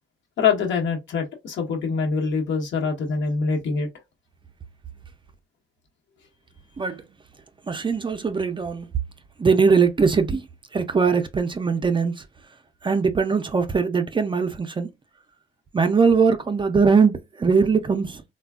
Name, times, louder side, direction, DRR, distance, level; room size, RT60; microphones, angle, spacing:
voice 1, 0.4-3.9, left 5 dB, 70° left, 1.0 m, -24 dB
voice 2, 6.8-7.2 7.6-8.9 9.4-12.3 12.8-14.9 15.7-18.2, right 5 dB, 25° right, 0.4 m, -21 dB
3.2 x 2.2 x 2.3 m
cardioid pair, 90°, 20 cm